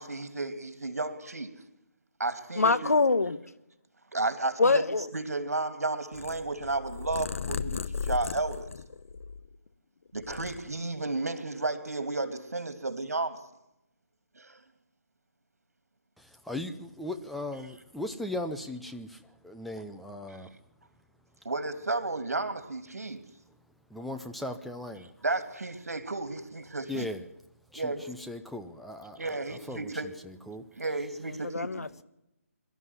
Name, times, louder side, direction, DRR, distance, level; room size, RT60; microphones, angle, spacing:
voice 1, 0.0-1.5 2.2-2.9 4.1-4.8 5.1-8.7 10.1-13.4 14.4-14.6 21.4-23.3 25.2-27.1 27.7-28.0 29.2-30.1 30.8-31.9, right 2 dB, 75° right, 2.9 m, -33 dB
voice 2, 2.6-3.4 4.6-5.1 31.5-32.0, left 3 dB, 75° left, 1.4 m, -24 dB
Purr, 6.1-9.7 10.1-11.1, left 6 dB, 55° left, 1.1 m, -36 dB
voice 3, 16.2-20.5 23.9-25.1 26.9-27.3 27.7-29.9 30.2-30.7, left 1 dB, ahead, 0.7 m, -38 dB
23.0 x 13.0 x 9.6 m
figure-of-eight pair, 155°, 8 cm